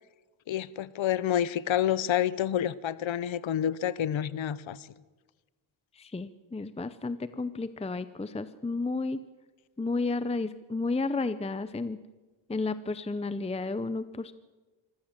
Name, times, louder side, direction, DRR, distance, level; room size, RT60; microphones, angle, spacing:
voice 1, 0.5-4.9, left 10 dB, 70° left, 0.9 m, -28 dB
voice 2, 6.0-9.2 9.8-12.0 12.5-14.3, left 3 dB, 15° left, 0.7 m, -32 dB
25.0 x 15.5 x 7.4 m
cardioid pair, 95°, 48 cm